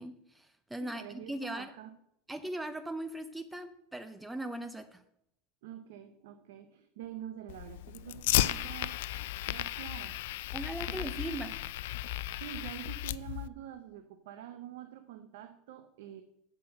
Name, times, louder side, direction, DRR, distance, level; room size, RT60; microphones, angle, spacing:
voice 1, 0.0-1.7 2.3-5.0 10.5-11.5, right 1 dB, 10° right, 10 dB, 0.7 m, -39 dB
voice 2, 0.8-1.9 5.6-9.0 9.4-10.2 10.9-11.4 12.4-16.2, right 11 dB, 75° right, 9 dB, 0.7 m, -46 dB
Fire, 7.5-13.5, left 15 dB, 75° left, 0.3 m, -34 dB
7.7 x 5.9 x 7.6 m, 0.77 s
hypercardioid pair, 100°, 0 cm